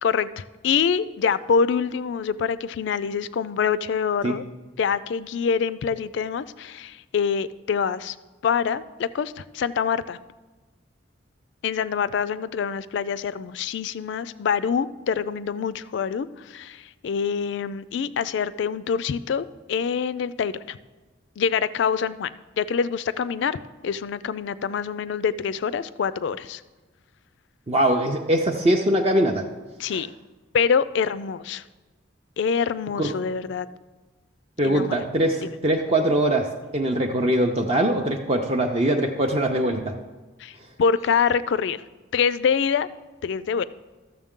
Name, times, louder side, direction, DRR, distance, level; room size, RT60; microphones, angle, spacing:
voice 1, 0.0-4.4 4.8-8.2 8.4-10.2 11.6-20.8 21.4-26.6 29.8-30.1 30.5-31.6 32.4-33.7 34.6-35.0 35.4-35.5 40.4-41.8 42.1-42.9 43.2-43.6, left 6 dB, 65° left, 16 dB, 0.3 m, -25 dB
voice 2, 27.7-29.4 29.9-30.0 33.0-33.1 34.6-39.9, right 1 dB, 30° right, 2 dB, 0.5 m, -22 dB
13.0 x 6.9 x 3.7 m, 1.2 s
head